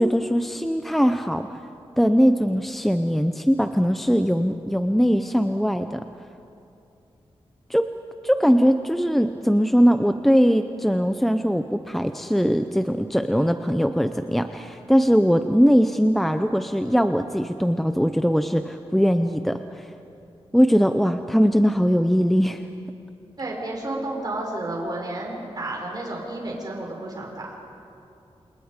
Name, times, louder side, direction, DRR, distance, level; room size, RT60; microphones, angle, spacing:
voice 1, 0.0-1.5 2.0-6.0 7.7-7.8 8.2-19.9 20.5-22.6, equal, ahead, 7 dB, 0.6 m, -20 dB
voice 2, 23.4-27.5, right 2 dB, 40° right, -2 dB, 5.8 m, -31 dB
28.0 x 28.0 x 5.1 m, 2.8 s
wide cardioid pair, 165°, 10 cm